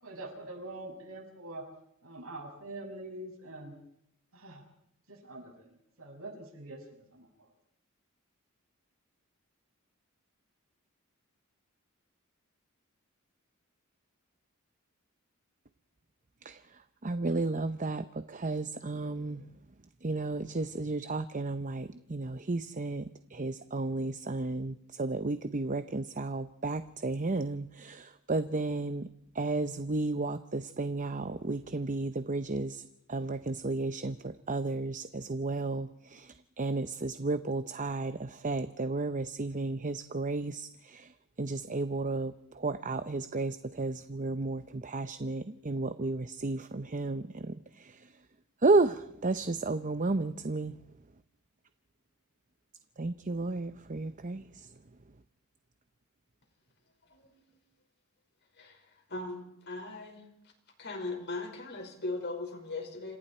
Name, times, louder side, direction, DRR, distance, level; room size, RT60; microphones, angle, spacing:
voice 1, 0.0-1.6 2.0-3.7 4.3-4.6 5.1-7.5, right 2 dB, 70° right, 2 dB, 6.9 m, -44 dB
voice 2, 16.4-19.5 20.0-29.1 29.3-48.3 48.6-50.8 53.0-54.8, right 3 dB, 35° right, 11 dB, 0.8 m, -33 dB
voice 3, 59.1-60.2 60.8-63.2, left 2 dB, 50° left, 4 dB, 5.3 m, -38 dB
28.0 x 26.5 x 4.5 m, 0.77 s
head